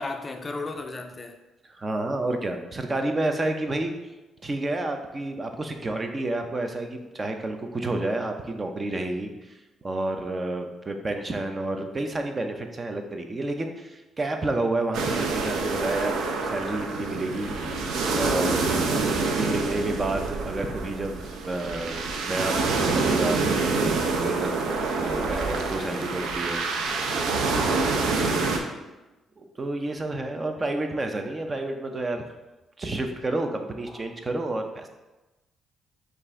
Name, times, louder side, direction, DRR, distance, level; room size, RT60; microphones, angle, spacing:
voice 1, 0.0-1.4 17.6-17.9 25.9-26.2 28.1-28.7 33.9-34.0, left 3 dB, 30° left, 5 dB, 0.4 m, -36 dB
voice 2, 1.7-3.9 4.4-9.5 9.8-17.5 18.2-26.7 27.6-28.4 29.4-32.2 32.8-34.9, right 2 dB, 30° right, 5 dB, 0.5 m, -30 dB
sound 1, 14.9-28.6, right 3 dB, 85° right, 0.5 m, -26 dB
5.3 x 2.5 x 3.7 m, 1.1 s
cardioid pair, 90°, 0 cm